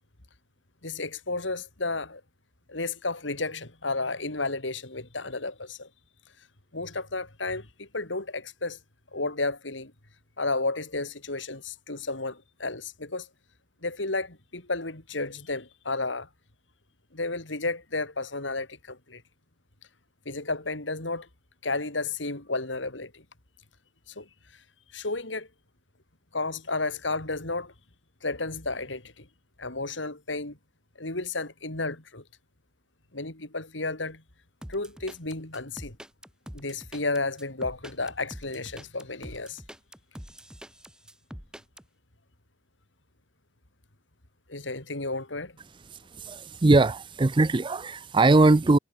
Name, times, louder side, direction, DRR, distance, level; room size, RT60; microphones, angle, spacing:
voice 1, 0.8-2.2 2.7-5.9 6.7-8.8 9.1-9.9 10.4-13.3 13.8-16.3 17.1-19.2 20.3-21.3 21.6-23.2 24.1-24.3 24.9-25.5 26.3-27.7 28.2-29.3 29.6-30.6 31.0-32.2 33.1-34.2 34.7-36.0 36.5-39.6 44.5-45.6, left 3 dB, 90° left, 4.1 m, -32 dB
sound 1, 34.6-41.8, equal, 5° right, 6.1 m, -44 dB
voice 2, 46.2-48.8, right 2 dB, 25° right, 0.5 m, -20 dB
head